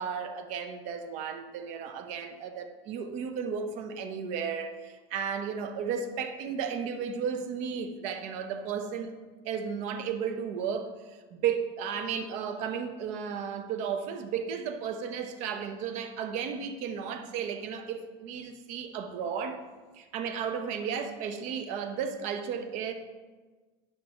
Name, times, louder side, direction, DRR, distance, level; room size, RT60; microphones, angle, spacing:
voice 1, 0.0-9.1 9.4-19.6 19.9-22.9, right 7 dB, 55° right, 7 dB, 0.9 m, -34 dB
11.5 x 5.1 x 3.0 m, 1.3 s
supercardioid pair, 120°, 14 cm